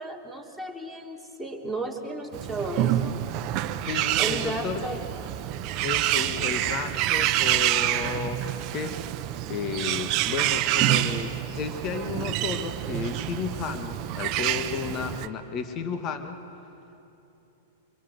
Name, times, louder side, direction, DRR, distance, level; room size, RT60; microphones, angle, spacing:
voice 1, 0.0-3.2 4.2-5.0, right 2 dB, 5° left, 2 dB, 3.0 m, -34 dB
Bird, 2.3-15.3, right 13 dB, 45° right, 0.9 m, -27 dB
voice 2, 3.9-4.8 5.8-9.0 9.5-16.4, left 6 dB, 40° left, 8 dB, 1.8 m, -33 dB
25.0 x 22.5 x 8.0 m, 2.9 s
hypercardioid pair, 110°, 0 cm